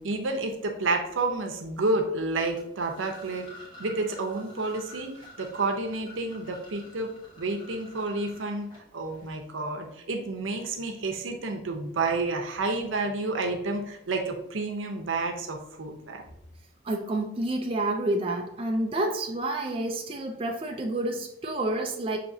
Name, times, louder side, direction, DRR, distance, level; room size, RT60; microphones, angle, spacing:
voice 1, 0.0-3.5 3.8-7.1 7.4-8.7 8.9-16.2, right 3 dB, 85° right, 3 dB, 0.7 m, -30 dB
sound 1, 2.5-9.3, left 1 dB, 20° left, 1.0 m, -49 dB
voice 2, 16.8-22.2, right 2 dB, 30° right, 1 dB, 0.4 m, -29 dB
6.0 x 2.9 x 2.7 m, 0.79 s
head